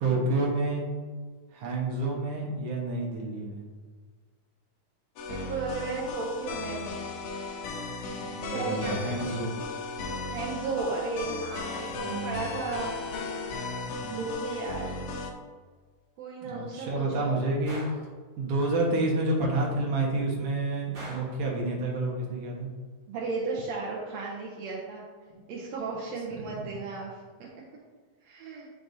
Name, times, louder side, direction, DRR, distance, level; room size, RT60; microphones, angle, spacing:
voice 1, 0.0-0.8 1.5-3.6 8.2-9.6 11.9-12.5 13.9-14.2 16.4-17.8 18.4-22.7 26.3-26.7, right 2 dB, 55° right, -3 dB, 1.7 m, -29 dB
sound 1, 5.2-15.3, left 3 dB, 75° left, 1.9 m, -36 dB
voice 2, 5.2-6.9 8.5-9.2 10.3-12.9 13.3-13.4 14.1-14.9 16.2-17.4 23.1-25.0 25.5-27.5 28.2-28.7, right 3 dB, 75° right, -4 dB, 1.6 m, -34 dB
Gunshot gunfire, 17.7-18.1 20.9-21.4, right 1 dB, 40° right, 1.9 m, -42 dB
9.5 x 4.7 x 2.7 m, 1.5 s
omnidirectional pair, 3.9 m